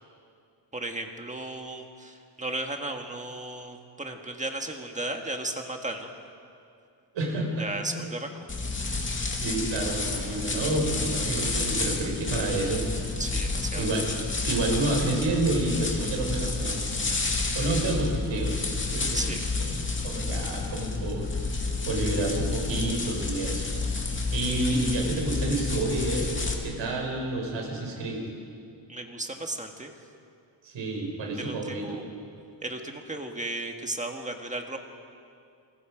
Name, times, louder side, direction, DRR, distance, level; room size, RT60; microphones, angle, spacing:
voice 1, 0.7-6.1 7.6-8.3 13.2-13.9 19.1-19.4 28.9-29.9 31.4-32.1 32.6-34.8, right 2 dB, 15° right, 4 dB, 1.6 m, -35 dB
voice 2, 7.1-7.7 7.9-8.1 9.3-12.8 13.7-14.1 14.4-16.8 17.5-19.3 19.8-21.3 21.9-23.7 24.3-28.2 30.6-32.0, right 2 dB, 80° right, 0 dB, 5.7 m, -29 dB
sound 1, 8.5-26.5, left 3 dB, 25° left, 2.5 m, -30 dB
28.0 x 22.5 x 5.1 m, 2.5 s
wide cardioid pair, 155°, 45 cm